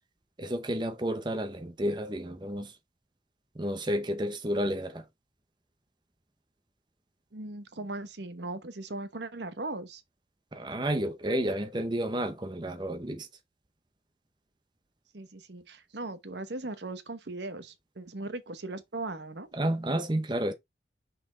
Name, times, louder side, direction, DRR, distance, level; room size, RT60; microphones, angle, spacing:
voice 1, 0.4-2.8 3.5-5.1 10.5-13.3 19.5-20.5, right 1 dB, 25° right, 0.8 m, -31 dB
voice 2, 7.3-10.0 15.1-19.5, right 2 dB, 70° right, 1.0 m, -38 dB
6.1 x 4.3 x 3.8 m
head